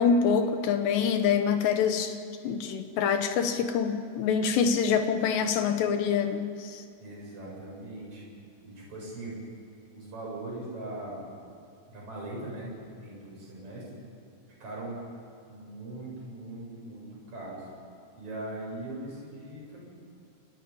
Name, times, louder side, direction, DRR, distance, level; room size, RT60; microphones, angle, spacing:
voice 1, 0.0-2.2 2.4-6.8, left 6 dB, 70° left, 7 dB, 2.8 m, -25 dB
voice 2, 7.0-8.3 8.6-9.4 9.9-11.2 11.8-14.0 14.6-15.0 15.5-17.7 18.2-19.9, right 2 dB, 25° right, -4 dB, 8.7 m, -40 dB
30.0 x 27.0 x 5.6 m, 2.4 s
omnidirectional pair, 5.9 m